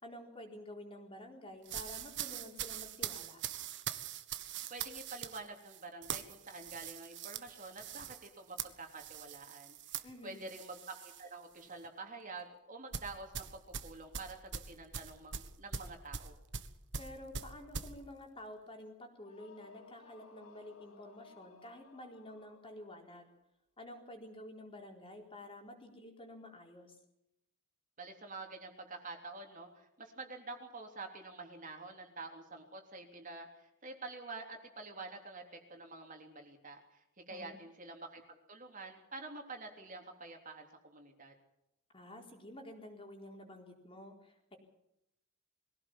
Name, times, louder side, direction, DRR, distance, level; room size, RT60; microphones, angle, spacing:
voice 1, 0.0-3.4 10.0-10.5 17.0-23.3 23.8-27.0 37.3-37.6 41.9-44.6, left 1 dB, 25° left, 2 dB, 4.3 m, -50 dB
sound 1, 1.6-11.3 11.6-11.9 12.9-17.9, right 8 dB, 55° right, 1.5 m, -43 dB
voice 2, 4.7-9.8 10.2-16.3 28.0-41.3, right 3 dB, 35° right, 3 dB, 3.4 m, -48 dB
sound 2, 19.2-23.2, left 4 dB, 70° left, 2.3 m, -59 dB
23.0 x 16.5 x 7.3 m, 0.85 s
head